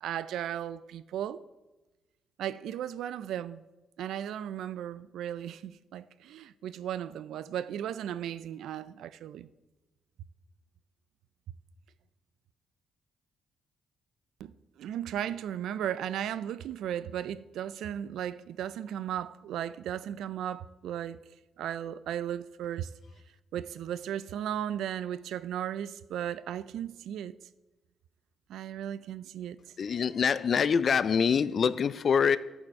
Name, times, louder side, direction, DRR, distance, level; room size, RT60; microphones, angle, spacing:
voice 1, 0.0-1.4 2.4-3.6 4.0-9.5 14.4-21.2 21.6-22.9 23.5-27.3 28.5-29.6, right 10 dB, 85° right, 0.3 m, -36 dB
voice 2, 29.8-32.4, left 6 dB, 45° left, 0.3 m, -25 dB
14.0 x 5.3 x 4.7 m
cardioid pair, 140°, 0 cm